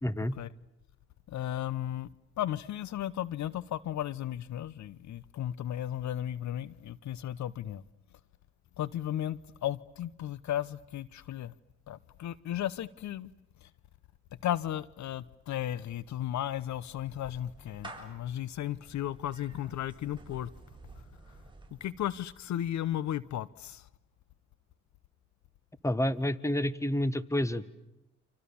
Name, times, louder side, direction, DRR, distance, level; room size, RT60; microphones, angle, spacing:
voice 1, 0.0-0.3 25.8-27.6, left 1 dB, 10° left, 1.6 m, -29 dB
voice 2, 1.3-2.1 2.4-7.8 8.8-11.5 11.9-13.3 13.6-13.7 14.4-20.5 21.8-23.9, left 11 dB, 70° left, 1.0 m, -35 dB
Clapping / Meow, 15.9-22.4, right 2 dB, 15° right, 7.4 m, -52 dB
30.0 x 27.5 x 7.2 m
cardioid pair, 90°, 30 cm